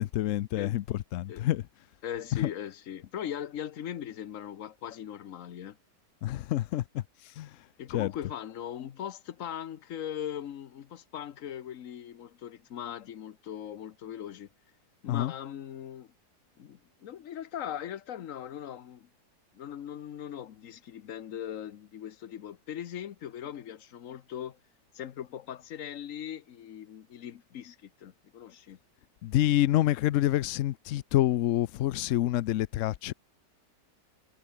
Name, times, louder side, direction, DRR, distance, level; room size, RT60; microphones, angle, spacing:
voice 1, 0.0-1.6 2.3-2.5 6.2-7.6 7.9-8.1 15.1-15.3 29.2-33.1, left 14 dB, 90° left, 0.6 m, -27 dB
voice 2, 2.0-5.8 7.8-14.5 15.0-16.1 16.6-19.1 19.5-24.6 24.9-28.8, left 10 dB, 55° left, 1.1 m, -40 dB
omnidirectional pair, 1.9 m